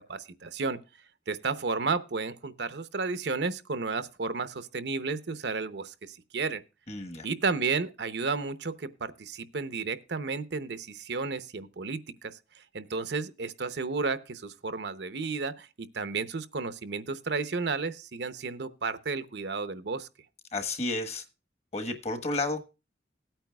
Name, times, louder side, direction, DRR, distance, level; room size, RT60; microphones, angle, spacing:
voice 1, 0.1-0.8 1.3-6.6 7.2-20.1, right 4 dB, 65° right, 0.7 m, -32 dB
voice 2, 6.9-7.3 20.5-21.3 21.7-22.6, left 2 dB, 35° left, 1.2 m, -31 dB
17.5 x 8.9 x 2.3 m
head